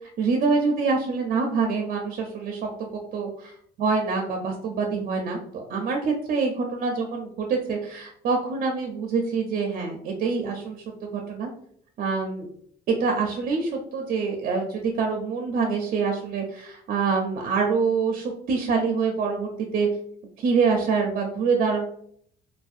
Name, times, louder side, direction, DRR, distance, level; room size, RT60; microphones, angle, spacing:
voice 1, 0.2-11.5 12.0-12.5 12.9-19.9 20.4-21.8, right 4 dB, 50° right, 2 dB, 0.5 m, -25 dB
2.6 x 2.1 x 2.4 m, 0.64 s
cardioid pair, 110°, 17 cm